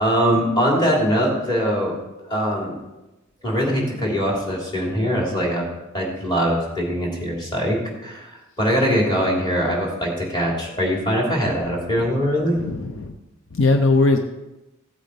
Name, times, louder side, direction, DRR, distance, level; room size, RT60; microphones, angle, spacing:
voice 1, 0.0-2.0 2.2-2.8 3.4-5.6 5.9-8.3 8.6-12.6, equal, 20° left, -3 dB, 3.1 m, -22 dB
voice 2, 12.5-13.2 13.5-14.2, left 3 dB, 70° left, 5 dB, 0.7 m, -19 dB
15.5 x 8.2 x 4.1 m, 1.0 s
head